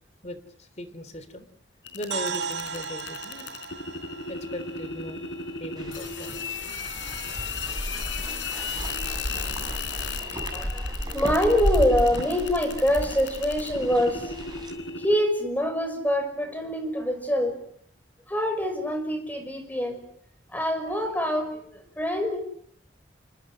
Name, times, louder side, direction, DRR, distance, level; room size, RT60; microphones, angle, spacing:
voice 1, 0.2-1.5 1.9-3.5 4.3-5.2 5.6-6.4, equal, 35° left, 12 dB, 3.3 m, -38 dB
sound 1, 1.8-15.2, left 5 dB, 80° left, 4.4 m, -36 dB
sound 2, 2.1-6.1, right 5 dB, 75° right, 2.1 m, -36 dB
sound 3, 5.8-14.7, equal, 25° right, 6.5 m, -33 dB
voice 2, 10.3-14.3 15.0-17.6 18.3-20.0 20.5-22.4, equal, 10° left, 7 dB, 6.0 m, -25 dB
30.0 x 25.0 x 6.4 m, 0.64 s
head